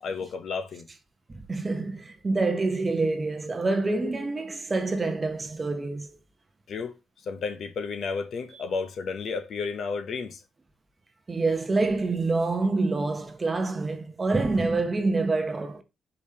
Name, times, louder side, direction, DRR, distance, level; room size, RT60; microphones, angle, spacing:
voice 1, 0.0-0.9 6.7-7.0 7.2-10.4, left 5 dB, 60° left, 0.7 m, -32 dB
voice 2, 1.3-6.1 8.5-8.6 11.3-15.8, right 3 dB, 25° right, 0.8 m, -26 dB
4.9 x 3.3 x 2.8 m
cardioid pair, 90°, 0 cm